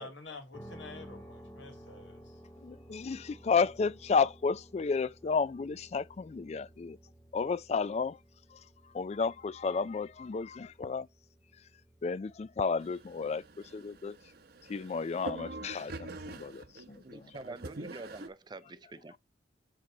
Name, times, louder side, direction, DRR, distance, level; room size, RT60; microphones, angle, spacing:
voice 1, 0.0-2.4, left 3 dB, 80° left, 2.3 m, -48 dB
sound 1, 0.5-16.4, equal, 15° left, 1.4 m, -55 dB
voice 2, 2.6-7.0 7.3-8.2 8.5-8.6 8.9-11.1 12.0-13.4 13.7-14.2 14.7-17.3, left 5 dB, 35° left, 0.3 m, -32 dB
sound 2, 12.8-18.3, right 2 dB, 55° right, 0.8 m, -45 dB
voice 3, 17.0-19.2, right 3 dB, 25° right, 0.5 m, -46 dB
7.9 x 3.1 x 4.9 m
head